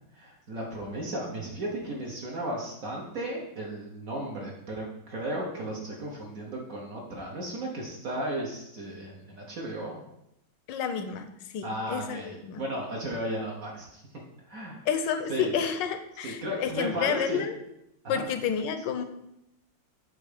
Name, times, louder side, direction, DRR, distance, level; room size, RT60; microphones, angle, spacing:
voice 1, 0.1-10.0 11.6-14.0 14.5-14.8 15.3-15.6 16.2-17.5 18.0-18.3, right 1 dB, 55° right, -2 dB, 1.1 m, -35 dB
voice 2, 10.7-11.3 11.5-12.6 14.9-17.6 18.1-19.0, left 7 dB, 75° left, 9 dB, 1.2 m, -30 dB
8.0 x 2.7 x 5.0 m, 0.82 s
omnidirectional pair, 2.2 m